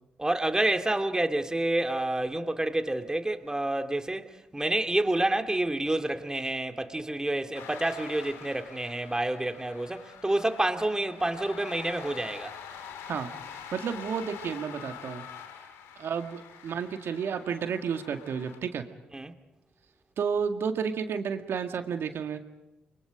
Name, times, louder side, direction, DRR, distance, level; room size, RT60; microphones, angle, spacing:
voice 1, 0.2-12.5 19.1-19.3, right 1 dB, 15° right, 2.4 m, -28 dB
sound 1, 7.5-18.6, left 8 dB, 75° left, 2.3 m, -45 dB
voice 2, 13.1-15.2 16.0-18.8 20.2-22.4, right 6 dB, 60° right, 2.1 m, -32 dB
30.0 x 23.5 x 5.2 m
hypercardioid pair, 40°, 5 cm